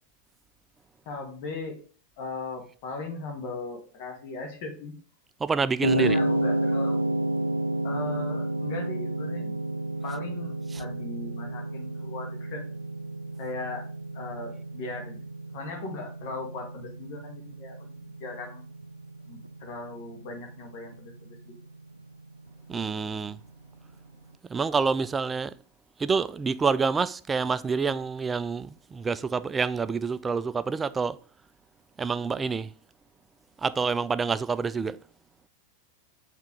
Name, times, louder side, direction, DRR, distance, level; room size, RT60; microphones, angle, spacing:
voice 1, 1.0-1.8 2.2-4.9 5.9-7.0 7.8-9.6 10.0-12.6 13.4-13.9 14.1-15.2 15.5-18.6 19.2-21.5, left 3 dB, 45° left, 1.6 m, -38 dB
voice 2, 5.4-6.2 10.7-10.8 22.7-23.4 24.5-25.6 26.0-31.2 32.0-32.7 33.6-35.0, right 5 dB, 15° right, 0.3 m, -27 dB
sound 1, 5.8-24.1, right 1 dB, 80° right, 0.4 m, -32 dB
8.2 x 3.4 x 3.6 m
figure-of-eight pair, 90°, 0 cm